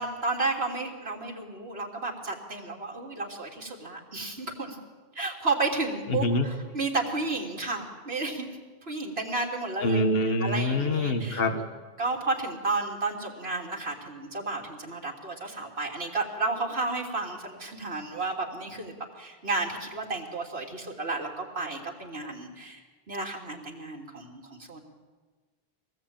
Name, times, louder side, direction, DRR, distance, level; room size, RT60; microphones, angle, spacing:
voice 1, 0.0-4.8 5.2-8.5 8.9-10.1 10.4-11.6 12.0-22.8 23.1-24.8, right 3 dB, 80° right, -1 dB, 3.4 m, -32 dB
voice 2, 6.1-6.4 9.8-11.6, left 1 dB, 70° left, 6 dB, 1.8 m, -25 dB
24.5 x 18.5 x 8.9 m, 1.3 s
omnidirectional pair, 1.0 m